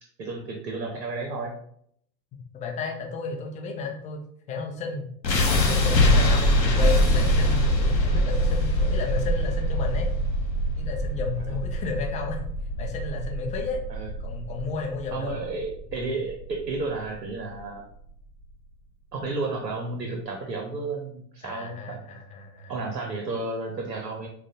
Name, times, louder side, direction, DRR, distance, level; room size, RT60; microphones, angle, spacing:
voice 1, 0.2-1.5 6.6-6.7 11.5-11.6 13.9-14.1 15.1-17.8 19.1-22.0 22.7-24.3, right 3 dB, 75° right, 2 dB, 0.8 m, -32 dB
voice 2, 2.5-4.2 4.5-5.1 5.5-10.1 10.8-12.4 12.8-13.8 14.2-15.4 21.4-22.8, left 4 dB, 15° left, 0 dB, 0.4 m, -33 dB
sound 1, 5.2-17.3, equal, 85° left, 0.7 m, -24 dB
6.0 x 2.2 x 2.7 m, 0.68 s
figure-of-eight pair, 85°, 50 cm